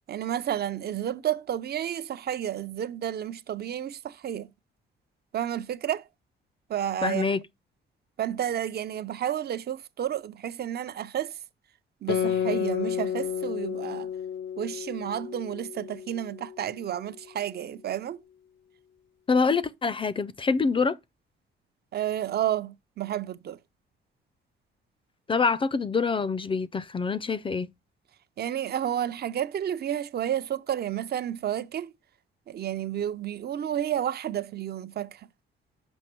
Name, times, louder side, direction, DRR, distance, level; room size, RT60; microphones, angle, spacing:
voice 1, 0.1-4.5 5.3-6.0 6.7-7.3 8.2-11.4 12.0-14.1 14.6-18.2 21.9-23.6 28.4-31.9 32.5-35.3, right 10 dB, 55° right, 0.6 m, -31 dB
voice 2, 7.0-7.4 19.3-21.0 25.3-27.7, left 4 dB, 25° left, 0.5 m, -25 dB
Guitar, 12.1-17.0, left 9 dB, 70° left, 0.6 m, -31 dB
6.3 x 5.2 x 4.4 m
cardioid pair, 90°, 20 cm